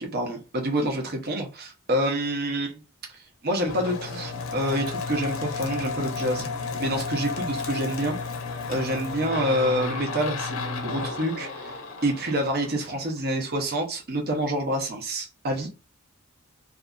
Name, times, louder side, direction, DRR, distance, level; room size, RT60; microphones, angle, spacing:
voice 1, 0.0-2.8 3.1-6.5 6.8-8.2 8.7-11.8 12.0-15.7, right 1 dB, 45° right, 0.7 m, -27 dB
sound 1, 3.6-13.2, left 4 dB, 70° left, 0.6 m, -33 dB
2.6 x 2.4 x 2.2 m
head